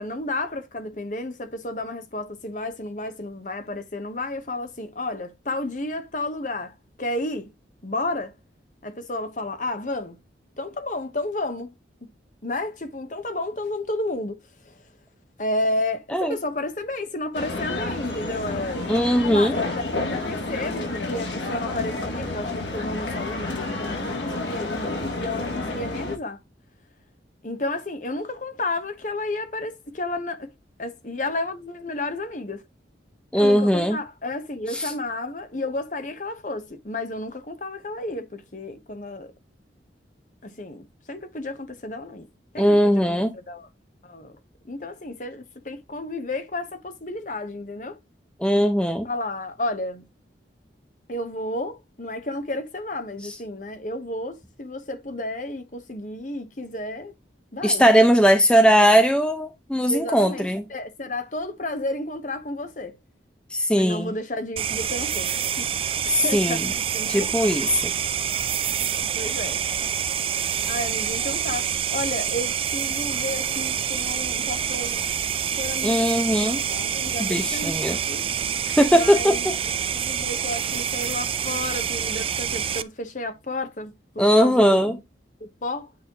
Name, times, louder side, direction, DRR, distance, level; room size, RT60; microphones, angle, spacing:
voice 1, 0.0-7.5 7.8-8.3 8.8-10.2 10.6-11.7 12.4-14.4 15.4-18.9 19.3-19.7 20.1-26.4 27.4-30.5 30.8-32.6 33.3-39.3 40.4-42.3 42.5-43.7 44.0-44.4 44.6-48.0 49.0-50.0 51.1-57.1 57.5-57.9 59.9-63.0 63.7-67.3 69.1-69.6 70.7-75.1 75.5-78.2 78.9-79.5 79.9-84.9 85.4-85.9, left 2 dB, 45° left, 1.1 m, -32 dB
sound 1, 17.3-26.1, left 2 dB, 80° left, 2.8 m, -30 dB
voice 2, 18.9-19.6 33.3-34.0 34.7-34.9 42.6-43.3 48.4-49.0 57.6-60.6 63.5-64.1 66.1-66.7 67.1-67.9 75.8-76.6 77.2-78.0 78.8-79.6 84.2-85.0, equal, 5° left, 0.7 m, -19 dB
sound 2, 64.6-82.8, right 8 dB, 30° right, 0.4 m, -27 dB
8.6 x 4.2 x 3.0 m
head